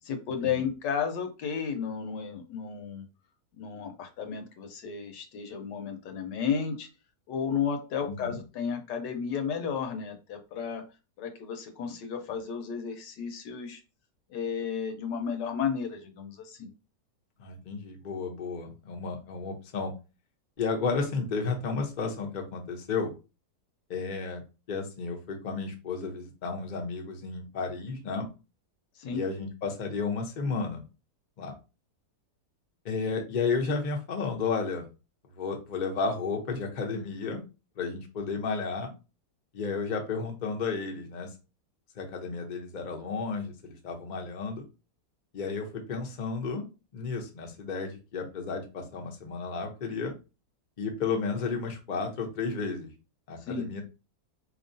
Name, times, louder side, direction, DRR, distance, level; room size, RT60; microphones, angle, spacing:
voice 1, 0.0-3.0 3.5-6.9 7.3-10.9 11.2-13.8 14.3-16.7 29.0-29.2 53.4-53.7, left 7 dB, 80° left, 5 dB, 1.4 m, -33 dB
voice 2, 17.4-19.9 20.6-23.1 23.9-24.4 24.7-28.3 29.1-30.8 31.4-31.5 32.8-34.9 35.3-37.4 37.8-38.9 39.5-41.3 42.0-44.6 45.3-46.7 46.9-50.1 50.8-52.9 53.3-53.8, left 4 dB, 45° left, 2 dB, 0.6 m, -32 dB
4.2 x 2.9 x 2.6 m, 0.30 s
omnidirectional pair, 1.9 m